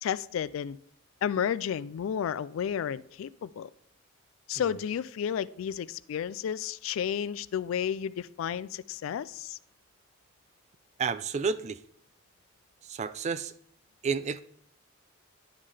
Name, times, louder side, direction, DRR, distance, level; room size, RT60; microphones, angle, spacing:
voice 1, 0.0-0.8 1.2-3.7 4.5-9.6, left 8 dB, 80° left, 0.3 m, -32 dB
voice 2, 11.0-11.8 12.8-13.5 14.0-14.4, right 5 dB, 35° right, 0.3 m, -30 dB
11.0 x 5.4 x 3.3 m
head